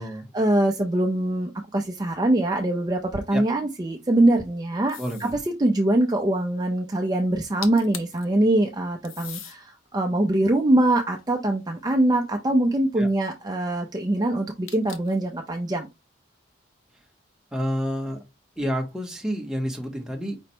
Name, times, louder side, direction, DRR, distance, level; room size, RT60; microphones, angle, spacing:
voice 1, 0.3-5.3 5.6-15.9, right 1 dB, 20° right, 0.4 m, -23 dB
sound 1, 4.9-5.4 7.4-7.5 7.6-8.2 9.0-9.6 10.3-11.7 14.7-15.2, left 8 dB, 85° left, 0.7 m, -40 dB
voice 2, 5.0-5.4 13.0-13.1 17.5-18.2 18.6-20.4, equal, 5° right, 0.8 m, -29 dB
5.1 x 2.1 x 4.3 m
head